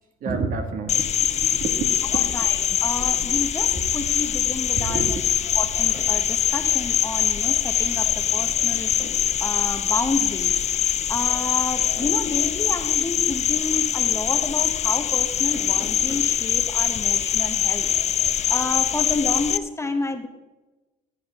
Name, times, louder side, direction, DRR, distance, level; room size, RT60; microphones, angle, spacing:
voice 1, 0.2-3.4 3.7-3.9 4.7-5.5, right 4 dB, 55° right, 5 dB, 1.8 m, -31 dB
Cricket, 0.9-19.6, left 9 dB, 40° left, 0.5 m, -23 dB
voice 2, 2.3-5.0 5.6-8.9 9.4-10.5 11.1-17.9 18.2-20.3, left 2 dB, 15° left, 7 dB, 0.9 m, -30 dB
sound 1, 3.2-8.5, right 4 dB, 90° right, 4.4 m, -42 dB
sound 2, 5.9-6.2 7.7-8.1 8.4-9.3 11.7-12.5 15.4-16.4, equal, 10° right, 3.2 m, -41 dB
14.5 x 8.6 x 3.6 m, 1.1 s
cardioid pair, 110°, 17 cm